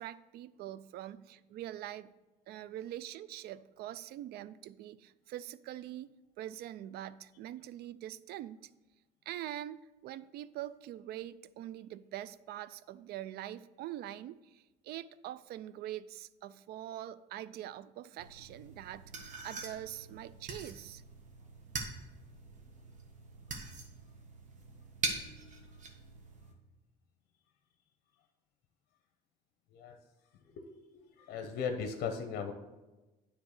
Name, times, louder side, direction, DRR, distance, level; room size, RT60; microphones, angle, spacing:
voice 1, 0.0-2.1 2.5-6.1 6.4-8.7 9.3-21.0, right 12 dB, 70° right, 17 dB, 0.4 m, -44 dB
sound 1, 18.2-26.5, right 3 dB, 45° right, 1.5 m, -43 dB
voice 2, 30.5-32.5, left 6 dB, 75° left, 5 dB, 0.9 m, -38 dB
9.7 x 3.6 x 6.6 m, 1.1 s
cardioid pair, 110°, 17 cm